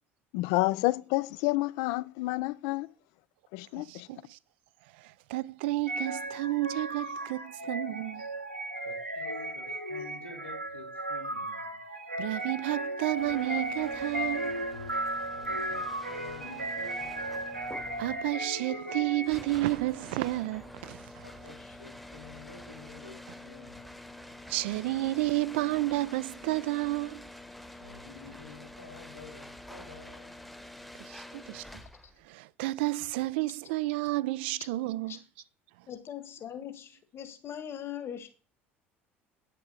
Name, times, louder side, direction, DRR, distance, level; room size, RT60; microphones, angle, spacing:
voice 1, 0.3-2.9 3.5-4.1, left 20 dB, 60° left, 0.5 m, -29 dB
voice 2, 3.8-4.4 5.0-8.3 12.2-14.6 18.0-21.2 24.5-27.3 31.0-31.7 32.2-35.2, right 19 dB, 60° right, 0.4 m, -31 dB
sound 1, 5.9-19.5, right 1 dB, 90° right, 1.2 m, -35 dB
voice 3, 8.8-11.8 15.3-17.8 21.2-24.0 27.7-30.5, left 4 dB, 85° left, 2.7 m, -50 dB
sound 2, 13.2-32.2, left 1 dB, ahead, 1.0 m, -47 dB
voice 4, 35.9-38.3, left 9 dB, 40° left, 1.8 m, -40 dB
9.2 x 6.7 x 6.2 m
figure-of-eight pair, 65°, 6 cm